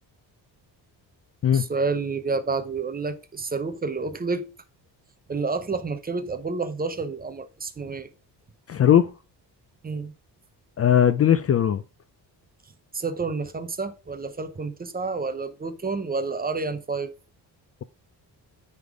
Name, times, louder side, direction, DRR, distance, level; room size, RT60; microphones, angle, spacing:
voice 1, 1.5-4.5 5.3-8.1 9.8-10.1 12.9-17.1, right 4 dB, 20° right, 0.7 m, -29 dB
voice 2, 8.7-9.1 10.8-11.8, left 9 dB, 35° left, 0.4 m, -19 dB
9.5 x 3.6 x 4.9 m
cardioid pair, 140°, 41 cm